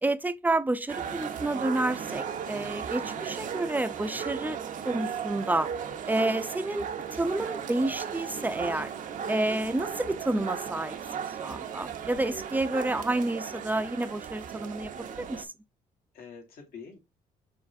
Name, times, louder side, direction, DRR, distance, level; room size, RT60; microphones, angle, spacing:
voice 1, 0.0-4.6 4.9-5.7 6.1-6.9 7.2-8.9 9.3-15.5, right 2 dB, 10° right, 0.4 m, -29 dB
sound 1, 0.9-15.5, right 7 dB, 55° right, 0.6 m, -36 dB
voice 2, 9.4-9.8 16.1-17.0, left 5 dB, 75° left, 1.6 m, -47 dB
5.0 x 3.2 x 2.6 m
supercardioid pair, 75°, 16 cm